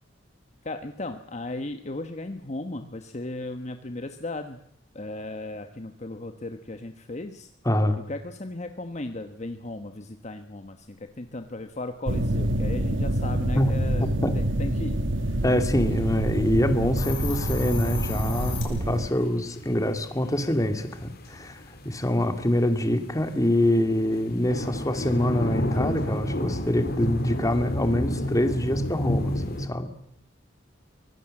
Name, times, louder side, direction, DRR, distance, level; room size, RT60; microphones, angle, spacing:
voice 1, 0.6-4.6 4.9-7.5 8.1-14.1 14.3-15.4, left 2 dB, 35° left, 8 dB, 1.1 m, -36 dB
voice 2, 7.6-8.0 13.5-13.9 14.2-14.4 15.4-29.9, left 1 dB, 20° left, 8 dB, 2.2 m, -25 dB
sound 1, 12.1-19.1, right 1 dB, 75° right, 1.3 m, -26 dB
sound 2, 15.4-29.7, left 1 dB, 55° left, 3.1 m, -33 dB
Hiss, 17.0-18.6, left 7 dB, 70° left, 6.6 m, -36 dB
24.0 x 18.0 x 7.6 m, 0.73 s
head